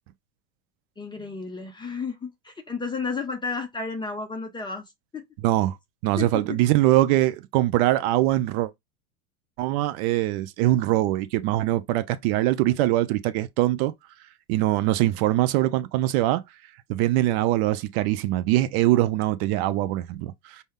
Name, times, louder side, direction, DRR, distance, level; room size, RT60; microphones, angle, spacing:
voice 1, 1.0-4.8 5.1-5.2 6.2-6.6, left 4 dB, 10° left, 0.5 m, -32 dB
voice 2, 5.4-5.8 6.0-8.7 9.6-13.9 14.5-16.4 16.9-20.6, right 15 dB, 45° right, 0.5 m, -22 dB
5.2 x 2.1 x 3.5 m
hypercardioid pair, 95°, 45 cm